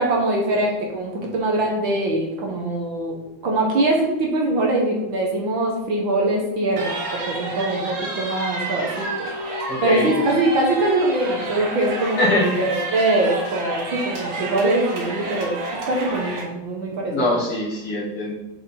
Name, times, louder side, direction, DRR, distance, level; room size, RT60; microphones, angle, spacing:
voice 1, 0.0-3.1 3.4-7.0 7.2-9.3 9.8-15.6 15.9-17.3, right 2 dB, 55° right, -1 dB, 1.5 m, -22 dB
sound 1, 6.8-16.4, right 2 dB, 75° right, 3.2 m, -30 dB
voice 2, 9.7-10.1 12.2-12.4 17.1-18.4, left 1 dB, 50° left, -6 dB, 2.9 m, -22 dB
7.6 x 5.1 x 4.2 m, 1.0 s
omnidirectional pair, 3.3 m